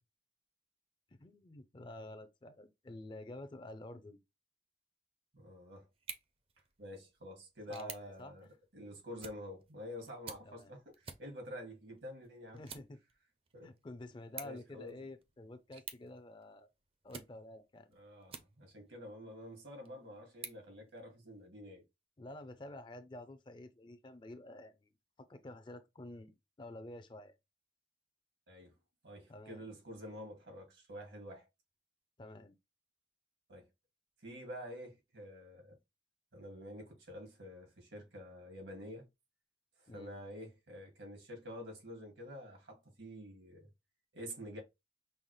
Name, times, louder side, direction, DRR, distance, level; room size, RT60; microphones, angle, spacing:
voice 1, 1.1-4.2 7.7-8.3 10.5-10.7 12.5-13.0 13.6-16.7 17.0-17.9 22.2-24.9 25.2-27.3 29.3-29.7 32.2-32.5 39.9-40.2, left 1 dB, 25° left, 0.4 m, -50 dB
voice 2, 5.3-5.9 6.8-12.6 13.5-13.7 14.4-15.0 17.9-21.8 28.5-28.7 29.0-31.5 33.5-33.7 34.2-35.8 36.3-39.1 39.8-43.7 44.1-44.6, equal, 85° right, 1.9 m, -48 dB
sound 1, 5.9-18.9 19.4-21.5, right 6 dB, 30° right, 0.5 m, -54 dB
5.4 x 2.0 x 3.1 m
head